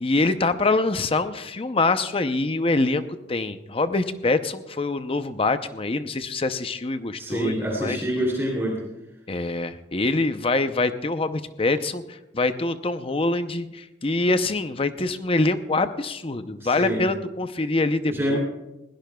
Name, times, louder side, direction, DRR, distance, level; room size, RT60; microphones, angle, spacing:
voice 1, 0.0-8.0 9.3-18.4, left 2 dB, 30° left, 11 dB, 0.7 m, -25 dB
voice 2, 7.2-8.8 16.6-17.0 18.0-18.4, equal, 15° right, -3 dB, 3.0 m, -26 dB
21.0 x 16.5 x 2.3 m, 0.96 s
head